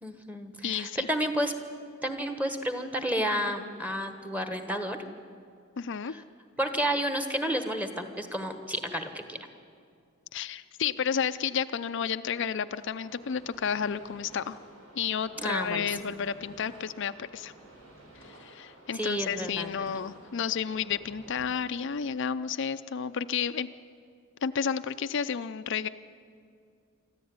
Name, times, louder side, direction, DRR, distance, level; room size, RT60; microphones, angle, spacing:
voice 1, 0.0-1.5 2.0-5.0 6.1-6.2 6.6-9.4 15.4-15.8 18.9-19.7, equal, 5° right, 7 dB, 1.4 m, -31 dB
voice 2, 0.6-1.1 5.8-6.1 10.3-14.6 15.0-17.5 18.2-23.7 24.4-25.9, left 7 dB, 60° left, 10 dB, 0.5 m, -31 dB
sound 1, 12.7-21.5, right 1 dB, 85° right, 5.7 m, -52 dB
24.0 x 14.0 x 9.5 m, 2.3 s
head